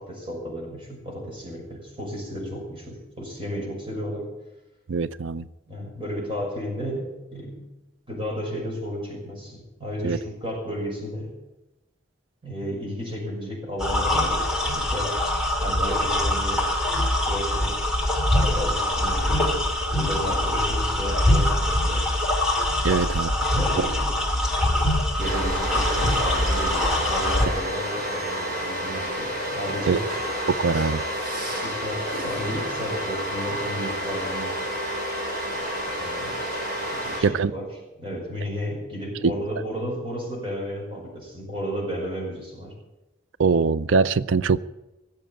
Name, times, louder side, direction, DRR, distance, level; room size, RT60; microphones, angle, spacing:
voice 1, 0.0-4.3 5.7-7.7 8.1-11.3 12.4-15.1 15.6-16.7 17.3-17.8 18.3-22.1 22.9-23.1 23.4-24.4 25.2-30.1 30.7-30.9 31.4-34.6 35.9-36.4 36.9-37.6 38.0-42.7, equal, 30° right, 5.9 m, -33 dB
voice 2, 4.9-5.4 10.0-10.2 22.8-23.3 23.8-23.9 29.9-30.0 30.5-31.0 37.2-37.5 39.2-39.3 43.4-44.6, right 5 dB, 85° right, 0.5 m, -22 dB
sound 1, 13.8-27.5, left 1 dB, 5° right, 2.6 m, -23 dB
sound 2, 25.2-37.2, equal, 55° right, 5.2 m, -30 dB
18.5 x 7.7 x 8.9 m
head